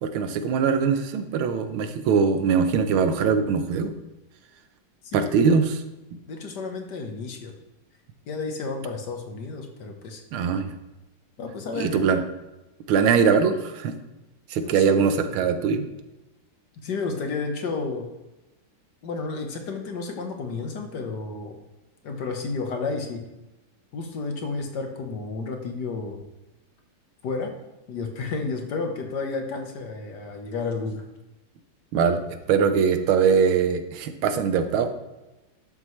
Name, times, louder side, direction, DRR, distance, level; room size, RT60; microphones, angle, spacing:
voice 1, 0.0-3.9 5.1-5.8 10.3-10.7 11.8-12.2 12.9-13.9 14.5-15.9 31.9-32.2 32.5-34.9, right 6 dB, 90° right, 8 dB, 1.7 m, -22 dB
voice 2, 6.3-7.5 8.3-10.2 11.4-12.2 14.7-15.5 16.8-18.1 19.0-21.5 22.0-23.2 23.9-26.2 27.2-27.5 27.9-31.0, left 4 dB, 60° left, 4 dB, 1.6 m, -31 dB
11.5 x 7.4 x 3.2 m, 1.0 s
omnidirectional pair, 2.2 m